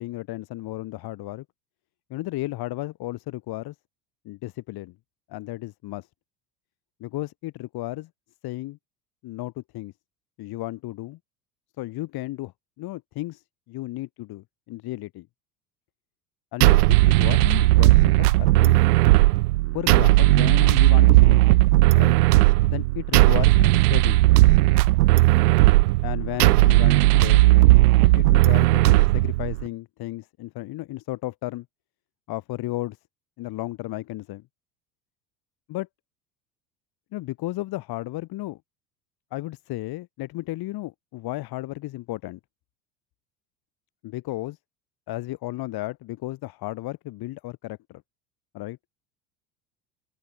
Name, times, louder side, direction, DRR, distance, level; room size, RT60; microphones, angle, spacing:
voice 1, 0.0-1.4 2.1-3.7 4.3-4.9 5.3-6.1 7.0-8.1 8.4-8.8 9.2-9.9 10.4-11.2 11.8-12.5 12.8-15.3 16.5-18.8 19.7-21.4 22.0-22.2 22.7-24.2 26.0-27.4 28.2-31.6 32.3-33.0 33.4-34.4 35.7-35.9 37.1-38.6 39.3-42.4 44.0-44.6 45.1-48.0 48.5-48.8, left 17 dB, 45° left, 4.5 m, -33 dB
sound 1, 16.6-29.6, right 19 dB, 65° right, 2.4 m, -17 dB
open air
figure-of-eight pair, 70°, 50 cm